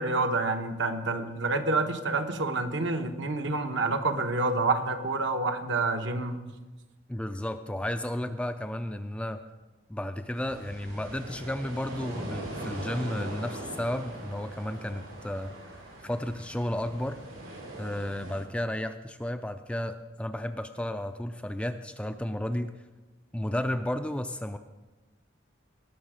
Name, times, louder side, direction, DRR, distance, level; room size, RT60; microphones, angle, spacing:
voice 1, 0.0-6.4, right 3 dB, 65° right, 6 dB, 1.0 m, -28 dB
voice 2, 7.1-9.4 9.9-15.5 16.0-17.2 17.8-22.7 23.3-24.6, left 1 dB, 5° left, 8 dB, 0.3 m, -33 dB
sound 1, 10.3-18.4, right 1 dB, 85° right, 3.8 m, -41 dB
19.0 x 6.6 x 4.9 m, 1.2 s
head